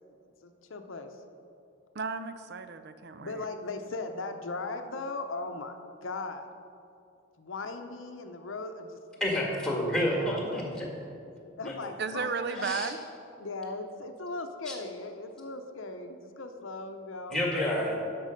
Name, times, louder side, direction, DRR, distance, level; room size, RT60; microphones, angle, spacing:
voice 1, 0.1-1.2 3.2-6.5 7.4-9.5 10.1-10.6 11.6-12.3 12.6-12.7 13.4-17.4, left 3 dB, 70° left, 6 dB, 0.7 m, -38 dB
voice 2, 1.9-3.4 12.0-13.0, right 5 dB, 50° right, 11 dB, 0.5 m, -34 dB
voice 3, 9.2-10.9 12.6-12.9 14.7-14.8 17.3-17.9, left 1 dB, 5° left, -2 dB, 1.7 m, -29 dB
12.0 x 6.0 x 5.2 m, 2.6 s
head